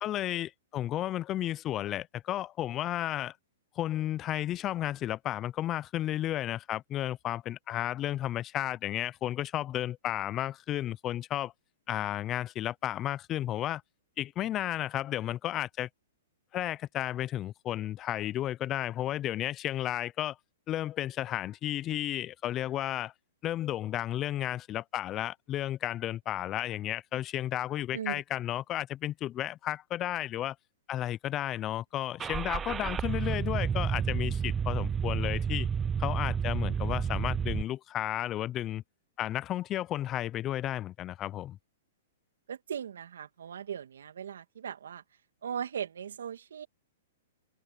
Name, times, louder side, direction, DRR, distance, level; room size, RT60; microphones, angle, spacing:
voice 1, 0.0-3.3 3.8-11.5 11.9-13.8 14.2-15.9 16.5-20.4 20.7-23.1 23.4-30.6 30.9-35.7 36.0-38.8 39.2-41.6, left 13 dB, 25° left, 0.5 m, -33 dB
Car / Engine starting, 32.2-37.6, right 7 dB, 15° right, 0.6 m, -30 dB
voice 2, 42.5-45.0 45.4-46.7, right 8 dB, 80° right, 2.4 m, -38 dB
hypercardioid pair, 135°, 0 cm